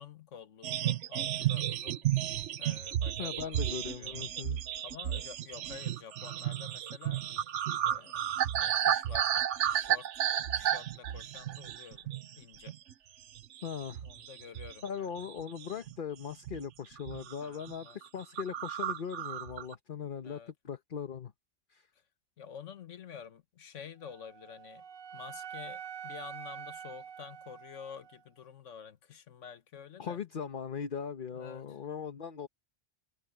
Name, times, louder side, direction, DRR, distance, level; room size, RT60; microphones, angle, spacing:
voice 1, 0.0-2.1 2.6-4.4 4.8-7.4 7.8-10.2 10.5-12.8 14.0-15.1 17.4-18.1 20.2-20.5 22.4-24.8 25.1-30.2 31.3-31.8, left 7 dB, 85° left, 1.4 m, -49 dB
sound 1, 0.6-12.3 12.7-12.9 13.3-14.9 15.2-15.9 16.4-16.7 17.0-17.3 17.6-17.7 18.0-18.1 18.4-19.7, right 11 dB, 80° right, 1.0 m, -33 dB
voice 2, 3.2-4.6 13.6-14.0 14.8-21.3 21.7-21.9 30.0-32.5, left 7 dB, 50° left, 1.1 m, -39 dB
Wind instrument woodwind instrument, 24.0-28.2, right 8 dB, 55° right, 0.8 m, -46 dB
omnidirectional pair, 1.2 m